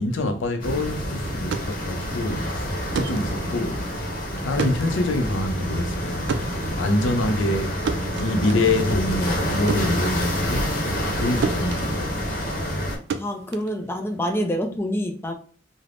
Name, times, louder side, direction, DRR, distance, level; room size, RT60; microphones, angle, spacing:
voice 1, 0.0-3.9 4.4-6.2 6.6-7.8 8.2-10.8 11.1-12.2, left 2 dB, 75° left, 0.5 m, -25 dB
sound 1, 0.6-13.0, equal, 50° left, 0.8 m, -27 dB
sound 2, 1.5-11.2 11.4-14.4, right 5 dB, 65° right, 0.3 m, -33 dB
voice 2, 13.2-15.3, equal, 10° left, 0.3 m, -26 dB
3.3 x 2.0 x 2.4 m
head